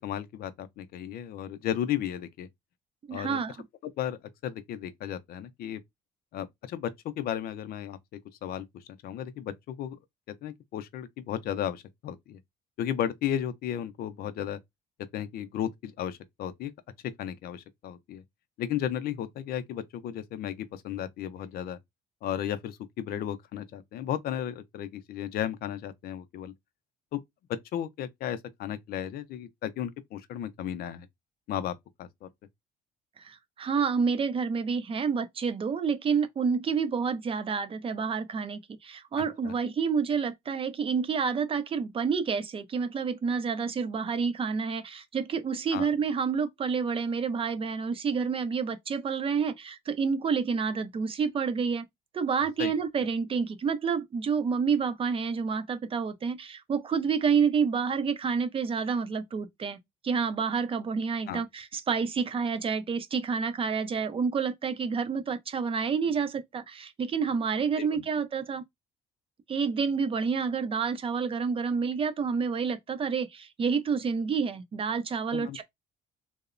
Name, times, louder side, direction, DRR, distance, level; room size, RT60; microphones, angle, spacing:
voice 1, 0.0-2.5 3.1-3.4 4.0-5.8 6.3-8.0 8.4-10.0 10.4-12.4 12.8-14.6 15.1-16.7 17.2-18.2 18.6-21.8 22.2-26.5 27.1-27.2 27.7-31.1 31.5-32.3 39.4-39.5 45.7-45.9 52.6-52.7 61.3-61.4 67.8-68.0 75.3-75.6, left 10 dB, 65° left, 0.4 m, -34 dB
voice 2, 3.1-3.5 33.2-51.8 52.1-59.8 60.0-68.6 69.5-75.6, right 5 dB, 35° right, 0.5 m, -29 dB
2.8 x 2.0 x 2.4 m
cardioid pair, 110°, 17 cm